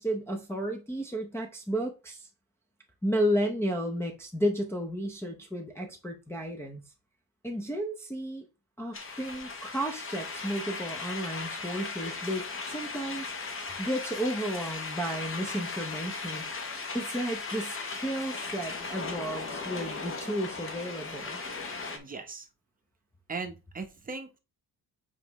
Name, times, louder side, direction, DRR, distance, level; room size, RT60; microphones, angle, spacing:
voice 1, 0.0-2.3 3.0-6.8 7.4-8.4 8.8-13.3 13.8-16.5 16.9-21.4, equal, 5° left, 0.6 m, -33 dB
sound 1, 8.9-22.0, left 4 dB, 35° left, 1.0 m, -37 dB
voice 2, 21.9-22.5 23.3-24.4, right 4 dB, 20° right, 0.8 m, -38 dB
7.4 x 4.6 x 3.0 m
cardioid pair, 160°, 39 cm